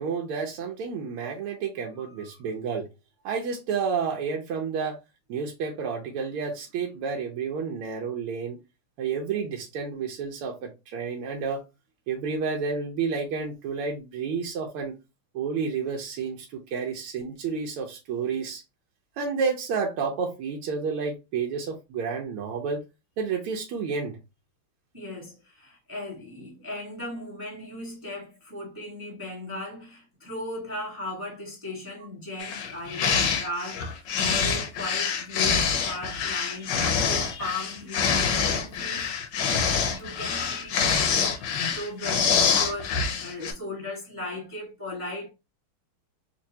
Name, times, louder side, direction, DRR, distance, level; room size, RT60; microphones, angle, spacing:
voice 1, 0.0-2.9 3.2-5.0 5.3-8.6 9.0-11.6 12.1-14.9 15.3-18.6 19.2-22.8 23.2-24.2, right 5 dB, 90° right, 1.6 m, -30 dB
voice 2, 24.9-39.1 39.4-45.3, left 1 dB, 10° right, 1.1 m, -37 dB
sound 1, 32.4-43.5, left 6 dB, 70° left, 1.2 m, -26 dB
4.3 x 2.6 x 2.7 m
omnidirectional pair, 2.3 m